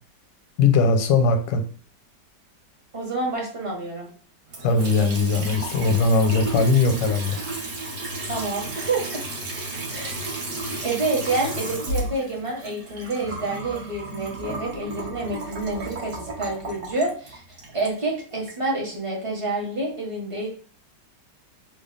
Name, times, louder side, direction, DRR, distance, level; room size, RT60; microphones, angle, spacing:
voice 1, 0.6-1.6 4.6-7.4, left 4 dB, 85° left, 7 dB, 1.3 m, -20 dB
voice 2, 2.9-4.1 8.3-9.2 9.9-10.3 10.8-20.5, right 2 dB, 30° right, -3 dB, 0.6 m, -28 dB
Water tap faucet / Sink (filling or washing) / Trickle dribble, 4.5-18.6, right 2 dB, 55° right, 1.1 m, -33 dB
3.2 x 2.2 x 3.8 m, 0.42 s
omnidirectional pair, 1.9 m